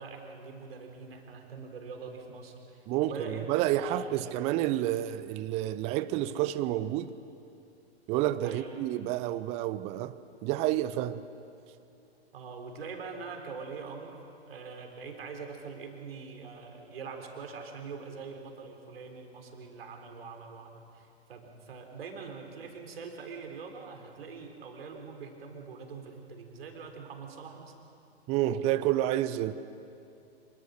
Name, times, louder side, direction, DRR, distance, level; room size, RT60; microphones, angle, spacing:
voice 1, 0.0-4.3 8.4-9.0 12.3-14.2 14.5-27.7, right 5 dB, 60° right, 3.9 m, -43 dB
voice 2, 2.9-7.1 8.1-10.1 10.4-11.2 28.3-29.5, right 13 dB, 20° right, 0.5 m, -29 dB
26.5 x 23.5 x 6.5 m
figure-of-eight pair, 115°, 34 cm